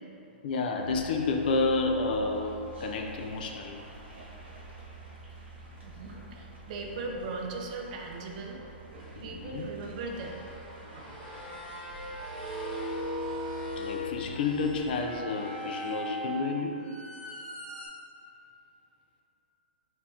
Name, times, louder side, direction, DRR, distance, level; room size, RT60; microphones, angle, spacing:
voice 1, 0.4-3.8 9.2-9.9 13.8-16.8, left 3 dB, 55° left, 3 dB, 0.5 m, -30 dB
sound 1, 0.8-15.2, right 2 dB, 90° right, 1.3 m, -48 dB
voice 2, 5.8-8.6 9.2-10.4, right 3 dB, 45° right, 1 dB, 0.5 m, -38 dB
sound 2, 6.8-7.6 9.0-9.1 10.1-17.9, equal, 5° right, 1.3 m, -39 dB
6.7 x 2.9 x 2.7 m, 2.9 s
hypercardioid pair, 155°, 6 cm